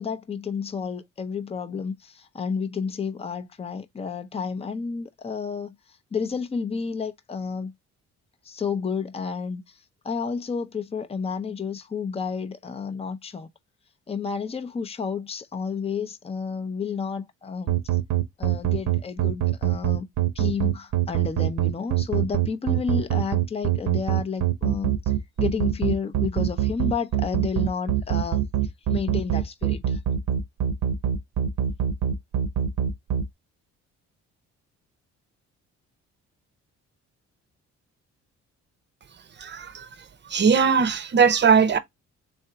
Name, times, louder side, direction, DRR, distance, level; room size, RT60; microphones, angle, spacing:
voice 1, 0.0-5.7 6.1-7.7 8.4-9.8 10.0-13.5 14.1-17.7 18.4-20.1 20.3-24.9 25.4-28.4 28.9-30.0, left 6 dB, 20° left, 0.6 m, -31 dB
sound 1, 17.7-33.2, right 12 dB, 65° right, 0.8 m, -23 dB
voice 2, 39.4-39.9 40.3-41.8, right 6 dB, 35° right, 0.7 m, -19 dB
3.7 x 2.6 x 4.4 m
cardioid pair, 90°, 30 cm